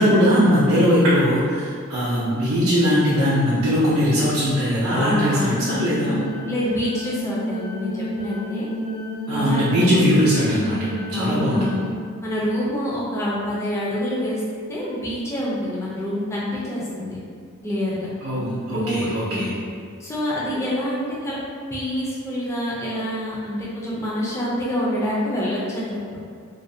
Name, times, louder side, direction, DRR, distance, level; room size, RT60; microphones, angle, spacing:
voice 1, 0.0-6.2 9.3-10.8 11.1-11.8 18.2-19.5, equal, 80° right, -8 dB, 0.5 m, -20 dB
voice 2, 4.9-5.6 6.1-8.7 9.3-10.0 11.1-11.8 12.2-14.4 14.7-17.2 17.6-18.1 18.7-19.5 20.0-21.4 21.7-26.2, left 1 dB, 15° left, -7 dB, 0.3 m, -27 dB
sound 1, 5.4-11.9, equal, 85° left, 0.3 m, -30 dB
2.4 x 2.1 x 2.6 m, 2.1 s
head